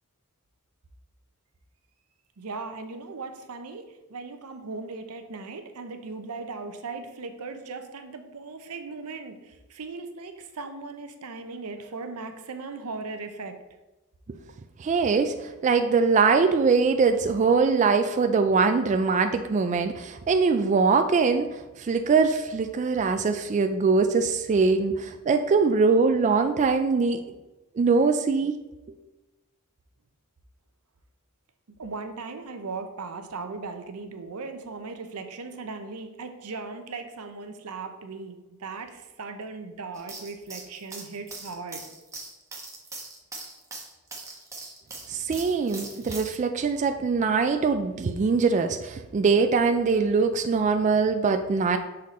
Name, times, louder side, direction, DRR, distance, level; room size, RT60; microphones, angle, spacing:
voice 1, 2.4-13.5 31.8-41.8, right 4 dB, 85° right, 7 dB, 0.7 m, -38 dB
voice 2, 14.8-15.4 15.6-21.5 21.8-27.2 27.8-28.5 45.1-51.8, right 4 dB, 35° right, 7 dB, 0.3 m, -22 dB
sound 1, 39.9-46.4, right 3 dB, 15° right, 1.0 m, -41 dB
6.5 x 4.2 x 4.1 m, 1.1 s
head